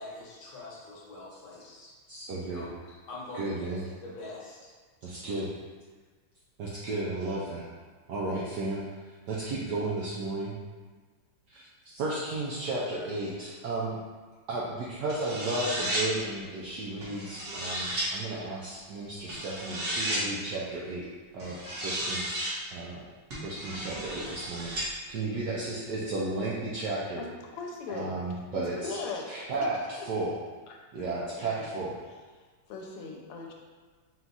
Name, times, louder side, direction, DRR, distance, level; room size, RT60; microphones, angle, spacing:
voice 1, 0.0-4.7, left 2 dB, 55° left, -6 dB, 1.4 m, -44 dB
voice 2, 2.1-2.7 3.4-3.8 5.0-5.5 6.6-7.7 8.1-8.8 9.3-10.6 11.5-14.0 14.5-21.1 21.3-22.3 22.7-23.0 23.4-24.7 25.1-27.2 27.9-29.0 29.3-29.8 30.1-30.3 30.9-32.0, right 2 dB, 80° right, -6 dB, 0.9 m, -33 dB
sound 1, 15.1-16.1 17.0-18.1 19.3-20.2 21.4-22.5 23.3-24.9, right 1 dB, 50° right, 1.3 m, -33 dB
voice 3, 27.5-28.2 28.5-29.3 30.0-30.1 30.7-30.8 31.4-31.8 32.7-33.5, left 4 dB, 85° left, 1 dB, 1.5 m, -39 dB
4.3 x 2.3 x 3.9 m, 1.4 s
omnidirectional pair, 2.4 m